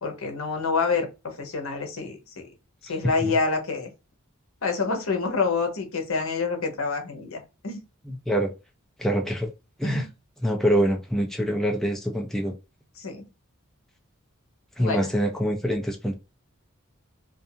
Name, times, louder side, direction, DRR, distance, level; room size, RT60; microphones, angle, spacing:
voice 1, 0.0-2.5 2.8-3.9 4.6-7.8 9.8-10.1 13.0-13.2 14.8-15.1, left 4 dB, 70° left, 0.8 m, -27 dB
voice 2, 8.1-8.5 9.0-9.5 9.8-10.1 10.4-12.5 14.8-16.1, equal, ahead, 0.4 m, -25 dB
2.6 x 2.3 x 2.7 m
head